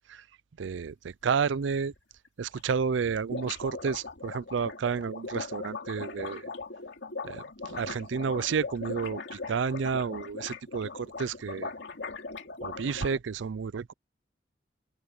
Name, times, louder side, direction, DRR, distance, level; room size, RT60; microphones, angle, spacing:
voice 1, 0.6-1.9 2.4-6.4 7.2-11.7 12.6-13.9, right 6 dB, 75° right, 0.4 m, -31 dB
sound 1, 1.9-2.0 2.3-2.4 2.6-2.7 2.9-13.2, left 4 dB, 65° left, 2.8 m, -39 dB
open air
head